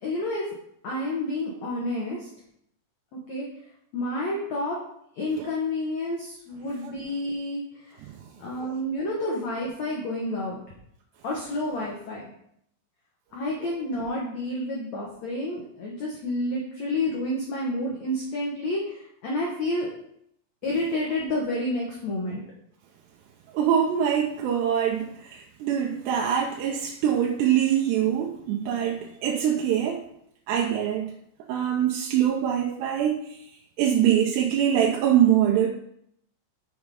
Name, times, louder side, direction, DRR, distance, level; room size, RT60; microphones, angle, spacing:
voice 1, 0.0-0.4 0.8-2.3 3.3-3.5 3.9-4.8 5.2-7.6 8.4-10.6 11.2-12.2 13.3-19.9 20.6-22.4, left 1 dB, 75° left, -3 dB, 1.6 m, -29 dB
voice 2, 23.5-30.0 30.5-31.1 31.5-33.2 33.8-35.7, right 9 dB, 80° right, 0 dB, 2.8 m, -23 dB
7.2 x 6.4 x 4.8 m, 0.71 s
omnidirectional pair, 5.3 m